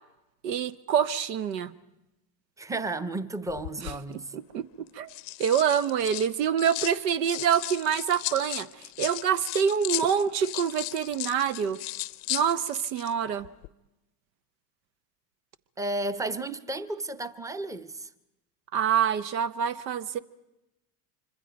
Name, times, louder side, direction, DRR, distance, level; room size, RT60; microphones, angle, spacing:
voice 1, 0.4-1.7 4.3-5.1 5.4-11.8 12.3-13.5 18.7-20.2, right 8 dB, 80° right, 1.0 m, -26 dB
voice 2, 2.6-4.3 15.8-18.1, right 2 dB, 5° right, 0.7 m, -33 dB
sound 1, 3.5-4.0 4.9-7.0 7.3-13.1 13.4-13.7, left 23 dB, 75° left, 0.7 m, -36 dB
25.5 x 25.0 x 5.2 m
hypercardioid pair, 85°, 49 cm